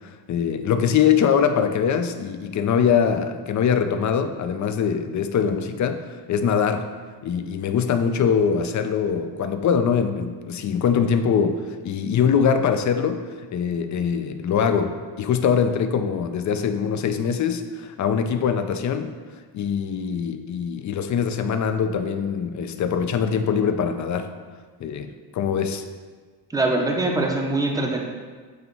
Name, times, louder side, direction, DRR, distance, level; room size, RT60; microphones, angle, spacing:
voice 1, 0.3-6.9 7.2-19.1 19.5-24.3 24.8-25.8, left 7 dB, 40° left, 8 dB, 0.5 m, -23 dB
voice 2, 26.5-28.0, right 2 dB, 10° right, 1 dB, 0.7 m, -23 dB
7.9 x 2.9 x 5.3 m, 1.5 s
cardioid pair, 125°, 43 cm